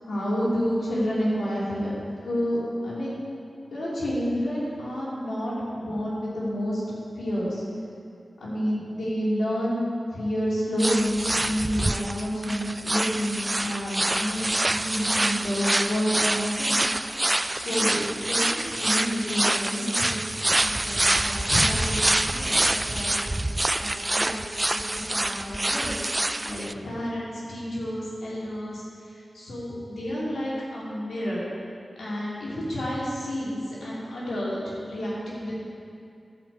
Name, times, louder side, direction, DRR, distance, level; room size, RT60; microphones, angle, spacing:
voice 1, 0.0-2.0 2.2-3.2 3.7-6.8 7.1-7.6 8.4-9.8 10.1-16.8 17.5-23.3 23.6-31.5 32.0-35.5, equal, 90° left, -7 dB, 3.1 m, -30 dB
sound 1, 10.8-26.7, right 1 dB, 25° right, 0.4 m, -26 dB
11.0 x 5.2 x 8.1 m, 2.5 s
cardioid pair, 45°, 0 cm